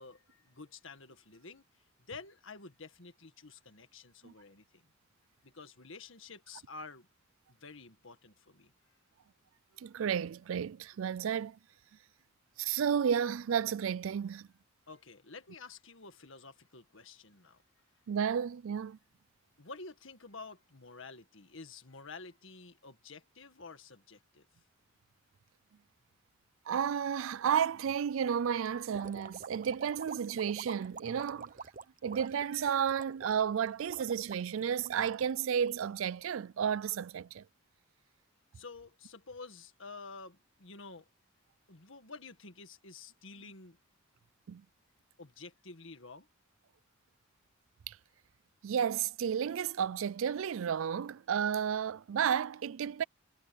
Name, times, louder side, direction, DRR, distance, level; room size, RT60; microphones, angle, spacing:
voice 1, 0.0-1.7 2.0-4.8 5.4-7.1 7.5-8.7 14.9-17.6 19.6-24.5 38.5-41.1 41.7-43.8 45.2-46.3, left 4 dB, 65° left, 1.9 m, -50 dB
voice 2, 9.8-11.6 12.6-14.5 18.1-19.0 26.7-31.6 32.0-37.4 44.5-44.6 47.9-48.0 48.6-53.0, right 8 dB, 70° right, 0.4 m, -32 dB
sound 1, 28.9-36.3, right 5 dB, 40° right, 1.0 m, -47 dB
head